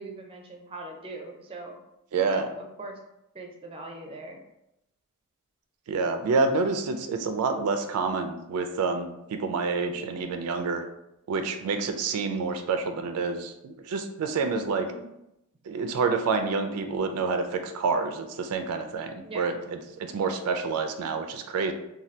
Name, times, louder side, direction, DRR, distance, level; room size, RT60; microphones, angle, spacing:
voice 1, 0.0-1.8 2.3-2.4 2.8-3.0 3.3-4.4 14.8-15.1 19.2-19.6, right 2 dB, 25° right, 2 dB, 0.4 m, -41 dB
voice 2, 2.1-2.5 5.9-10.8 11.3-14.9 15.7-21.7, right 4 dB, 90° right, 6 dB, 0.3 m, -28 dB
2.7 x 2.2 x 3.2 m, 0.84 s
head